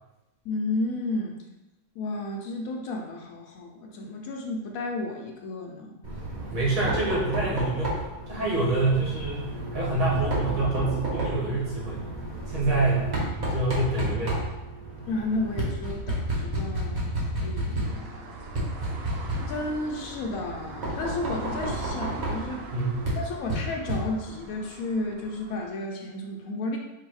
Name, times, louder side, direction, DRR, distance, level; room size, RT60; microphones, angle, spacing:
voice 1, 0.4-1.4 2.0-6.0 15.1-18.4 19.5-22.6 23.2-26.8, left 2 dB, 70° left, 1 dB, 1.0 m, -32 dB
Knock, 6.0-24.5, right 1 dB, 35° right, 0.9 m, -32 dB
voice 2, 6.5-8.0 8.3-12.0 12.5-13.1 13.4-14.4 22.7-23.0, right 2 dB, 65° right, -6 dB, 1.7 m, -26 dB
sound 1, 17.8-25.7, right 3 dB, 85° right, 0.5 m, -41 dB
4.6 x 2.2 x 4.6 m, 0.99 s
omnidirectional pair, 1.6 m